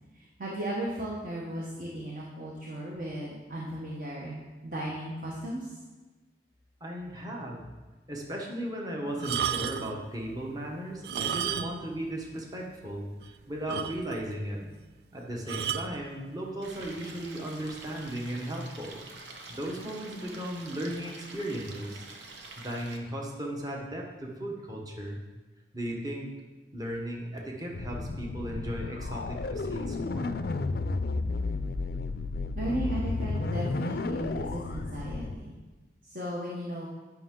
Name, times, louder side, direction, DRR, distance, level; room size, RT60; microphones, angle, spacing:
voice 1, 0.1-5.8 32.5-35.6 36.0-36.9, right 1 dB, 50° right, -4 dB, 1.1 m, -36 dB
voice 2, 6.8-7.6 8.1-14.7 15.1-19.0 19.5-22.1 22.6-25.2 25.7-26.3 26.7-30.4, right 1 dB, 20° right, -1 dB, 1.0 m, -36 dB
sound 1, 9.2-10.0 10.9-11.9 12.2-12.3 12.9-13.0 13.2-13.3 13.7-14.3 15.5-15.9 16.8-17.0, right 8 dB, 65° right, 0.4 m, -32 dB
Stream, 16.6-23.0, right 3 dB, 90° right, 1.0 m, -47 dB
sound 2, 27.7-35.3, left 3 dB, 55° left, 0.4 m, -32 dB
10.0 x 5.8 x 3.7 m, 1.3 s
head